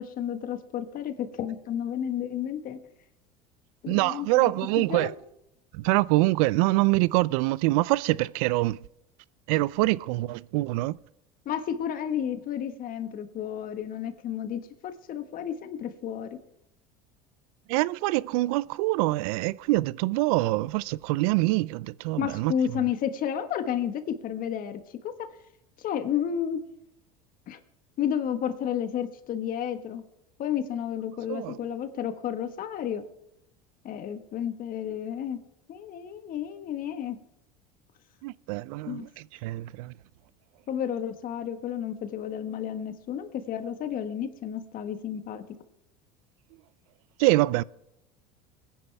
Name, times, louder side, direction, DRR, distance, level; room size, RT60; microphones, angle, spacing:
voice 1, 0.0-2.8 3.8-4.5 4.8-5.1 11.4-16.3 22.2-25.3 25.8-26.6 27.5-27.6 28.0-30.0 30.4-33.0 33.8-35.4 35.7-37.2 38.9-39.1 40.7-45.4, left 9 dB, 50° left, 1.5 m, -31 dB
voice 2, 3.9-5.1 5.7-8.8 9.5-11.0 17.7-22.5 31.3-31.6 38.2-39.9 47.2-47.6, right 20 dB, 75° right, 0.4 m, -25 dB
22.0 x 10.0 x 3.4 m
supercardioid pair, 95°, 19 cm